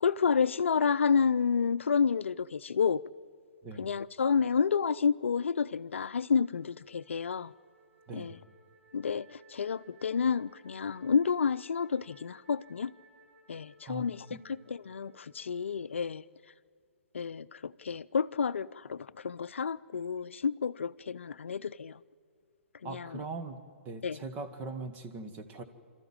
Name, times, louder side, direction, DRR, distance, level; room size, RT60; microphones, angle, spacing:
voice 1, 0.0-3.0 3.8-7.5 8.1-8.4 8.9-12.9 13.5-16.2 17.1-22.0 22.8-23.2 24.0-24.2, left 6 dB, 75° left, 0.5 m, -30 dB
Wind instrument woodwind instrument, 5.9-16.3, right 2 dB, 85° right, 6.6 m, -62 dB
voice 2, 13.9-14.4 22.8-23.6 23.8-25.6, right 3 dB, 25° right, 1.8 m, -41 dB
26.5 x 13.5 x 8.9 m
hypercardioid pair, 130°, 7 cm